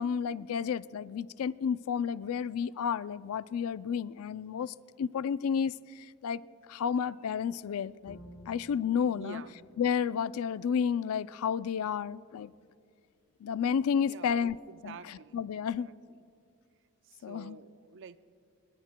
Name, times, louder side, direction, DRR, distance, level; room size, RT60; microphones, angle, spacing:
voice 1, 0.0-6.4 6.7-8.2 8.5-9.4 9.8-12.5 13.4-14.6 14.8-15.9 17.2-17.6, left 7 dB, 80° left, 17 dB, 0.4 m, -31 dB
Bowed string instrument, 8.1-11.2, right 1 dB, 60° left, 4.1 m, -54 dB
voice 2, 9.1-9.7 13.9-15.4 15.8-15.9 17.1-18.2, right 5 dB, 60° right, 13 dB, 0.5 m, -48 dB
27.5 x 21.5 x 2.2 m, 2.4 s
head